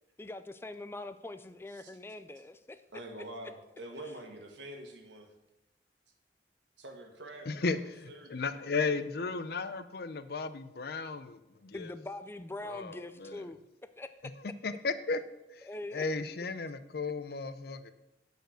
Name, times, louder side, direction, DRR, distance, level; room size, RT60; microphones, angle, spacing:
voice 1, 0.2-2.8 11.7-13.6 14.0-14.1 15.6-16.1, left 2 dB, 15° left, 0.3 m, -43 dB
voice 2, 2.9-5.3 6.8-8.4, right 1 dB, 85° right, 1.6 m, -46 dB
voice 3, 7.5-11.9 12.6-13.4 14.6-15.2 15.5-17.9, left 4 dB, 60° left, 0.6 m, -35 dB
8.9 x 5.2 x 6.3 m
head